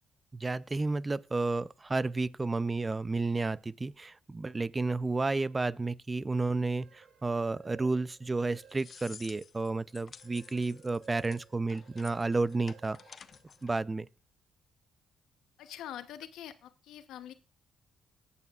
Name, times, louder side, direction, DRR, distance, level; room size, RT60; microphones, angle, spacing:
voice 1, 0.3-13.0 13.6-14.1, right 3 dB, 20° right, 0.4 m, -31 dB
sound 1, 6.6-9.3 9.7-14.0, right 7 dB, 55° right, 1.8 m, -57 dB
sound 2, 8.3-13.8, left 6 dB, 45° left, 0.5 m, -53 dB
voice 2, 15.6-17.3, left 11 dB, 85° left, 0.8 m, -44 dB
18.0 x 8.3 x 2.4 m
cardioid pair, 90°, 0 cm